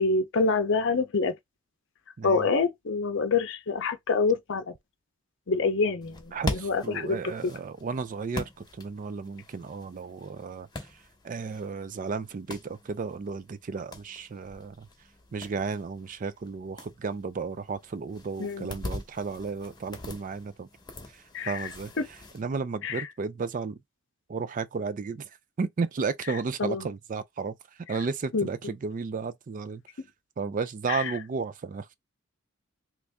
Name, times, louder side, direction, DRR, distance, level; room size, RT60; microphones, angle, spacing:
voice 1, 0.0-1.3 2.2-4.6 5.5-7.3 18.4-18.8 21.3-21.7 22.8-23.1 26.6-26.9 28.3-28.5 30.9-31.1, left 4 dB, 60° left, 0.6 m, -26 dB
voice 2, 2.2-2.5 6.3-8.4 8.8-10.7 11.2-14.9 15.3-20.7 21.5-21.9 22.3-23.8 24.3-25.3 25.6-27.5 27.9-29.8 30.4-31.9, right 4 dB, 40° right, 0.4 m, -33 dB
sound 1, 6.0-22.4, left 2 dB, 20° left, 0.9 m, -42 dB
3.0 x 2.6 x 3.4 m
head